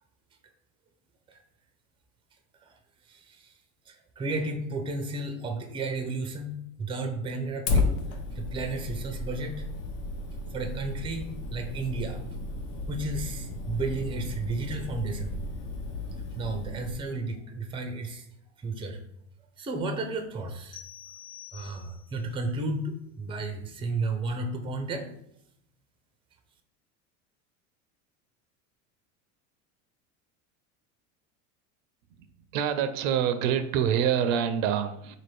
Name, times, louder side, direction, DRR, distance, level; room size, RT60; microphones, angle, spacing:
voice 1, 3.0-3.5 3.9-9.7 10.5-12.2 12.9-15.5 16.4-18.3 18.6-19.0 19.6-20.8 21.5-25.1, right 2 dB, 15° right, 6 dB, 0.4 m, -33 dB
Fire, 7.7-16.9, left 3 dB, 50° left, 0.8 m, -33 dB
sound 1, 20.7-22.2, left 9 dB, 70° left, 1.0 m, -47 dB
voice 2, 32.5-35.2, right 9 dB, 70° right, 9 dB, 0.5 m, -26 dB
3.9 x 2.6 x 3.2 m, 0.76 s
hypercardioid pair, 90°, 41 cm